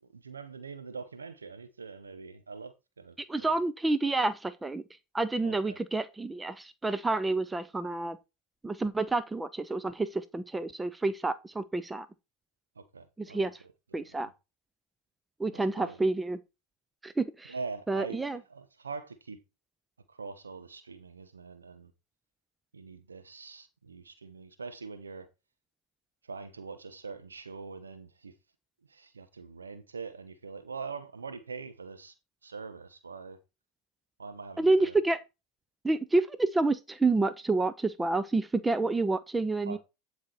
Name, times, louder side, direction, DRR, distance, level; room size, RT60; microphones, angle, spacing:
voice 1, 0.1-3.6 5.4-5.8 12.8-13.5 13.9-14.0 15.5-16.0 17.5-18.2 18.5-19.4 20.1-21.9 22.7-25.3 26.3-28.3 28.9-32.1 32.4-33.4 34.2-34.9 39.7-39.8, right 4 dB, 85° right, 1.1 m, -43 dB
voice 2, 3.2-4.8 5.1-8.2 8.6-12.1 13.2-13.6 13.9-14.3 15.4-16.4 17.0-17.5 17.9-18.4 34.6-35.2 35.8-39.8, right 3 dB, 10° right, 0.7 m, -29 dB
11.5 x 5.0 x 4.3 m
hypercardioid pair, 80°, 0 cm